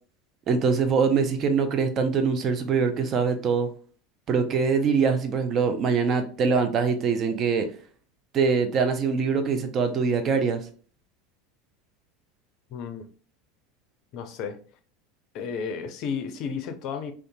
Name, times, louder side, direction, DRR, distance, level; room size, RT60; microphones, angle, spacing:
voice 1, 0.5-3.7 4.3-7.7 8.3-10.6, right 5 dB, 35° right, 8 dB, 0.4 m, -23 dB
voice 2, 12.7-13.1 14.1-14.6 15.3-17.1, left 6 dB, 50° left, 7 dB, 0.4 m, -32 dB
2.5 x 2.3 x 2.6 m, 0.41 s
figure-of-eight pair, 75°, 0 cm